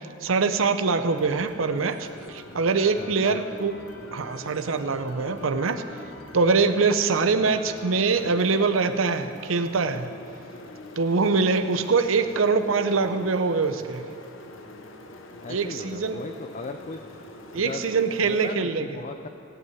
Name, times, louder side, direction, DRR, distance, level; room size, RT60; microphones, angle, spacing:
voice 1, 0.2-3.7 4.1-5.8 6.3-10.1 11.0-14.0 15.5-16.2 17.5-19.0, right 4 dB, 85° right, 9 dB, 0.7 m, -23 dB
sound 1, 1.0-18.6, left 2 dB, 70° left, 0.9 m, -44 dB
voice 2, 3.0-3.4 15.4-17.0 17.6-17.9 18.2-19.3, left 3 dB, 40° left, 5 dB, 0.5 m, -37 dB
16.5 x 5.7 x 9.3 m, 2.7 s
head